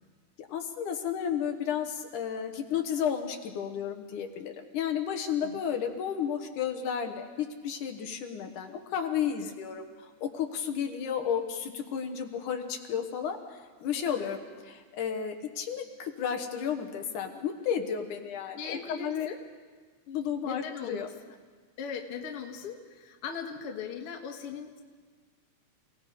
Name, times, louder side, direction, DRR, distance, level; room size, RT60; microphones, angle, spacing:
voice 1, 0.4-14.4 14.7-19.3 20.1-21.1, left 8 dB, 80° left, 5 dB, 2.8 m, -32 dB
voice 2, 18.5-19.4 20.4-21.0 21.8-24.8, left 6 dB, 50° left, 2 dB, 2.3 m, -39 dB
29.0 x 18.0 x 5.1 m, 1.4 s
omnidirectional pair, 3.5 m